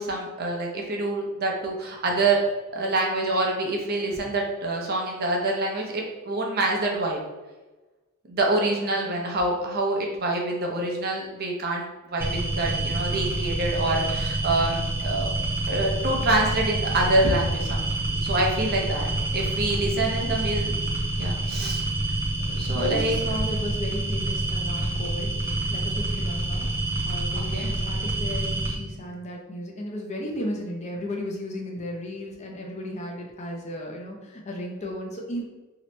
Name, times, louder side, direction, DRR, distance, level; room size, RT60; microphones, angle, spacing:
voice 1, 0.0-2.4 2.7-7.2 8.3-15.3 15.7-17.9 18.1-20.7 21.2-21.9 22.5-23.2 27.3-27.7, right 2 dB, 45° right, -1 dB, 0.6 m, -26 dB
voice 2, 8.6-9.2 20.0-20.6 22.7-26.7 27.0-35.4, left 1 dB, 30° left, 0 dB, 0.5 m, -35 dB
sound 1, 12.2-28.8, right 1 dB, 10° right, 0.7 m, -27 dB
3.0 x 2.8 x 3.2 m, 1.2 s
head